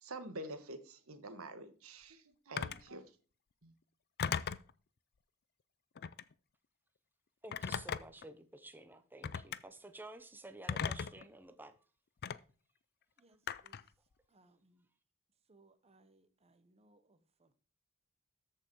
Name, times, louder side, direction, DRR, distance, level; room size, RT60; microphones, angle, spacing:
voice 1, 0.0-3.0 3.6-3.7, right 2 dB, 70° right, 1.4 m, -47 dB
Telephone, 2.6-2.9 4.2-4.7 5.9-6.3 7.5-8.2 9.2-9.6 10.7-11.2 12.2-12.4 13.5-13.9, left 7 dB, 50° left, 0.5 m, -37 dB
voice 2, 7.4-11.7, right 2 dB, 10° right, 0.8 m, -52 dB
voice 3, 13.2-13.8 14.3-14.9 15.5-17.5, right 2 dB, 30° right, 1.1 m, -68 dB
13.5 x 5.6 x 4.7 m
head